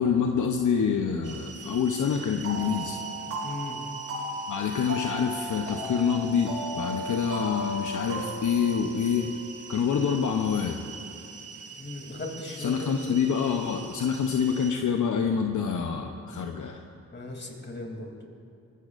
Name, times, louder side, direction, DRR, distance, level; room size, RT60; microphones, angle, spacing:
voice 1, 0.0-3.0 4.5-9.3 9.7-10.8 12.6-16.8, left 7 dB, 70° left, 3 dB, 0.8 m, -26 dB
sound 1, 1.2-14.7, right 6 dB, 50° right, 1.3 m, -44 dB
sound 2, 2.4-9.9, right 1 dB, 85° right, 3.9 m, -36 dB
voice 2, 3.4-3.8 11.8-12.9 17.1-18.1, left 2 dB, 35° left, 1 dB, 3.0 m, -37 dB
22.0 x 16.0 x 2.6 m, 2.8 s
cardioid pair, 65°, 31 cm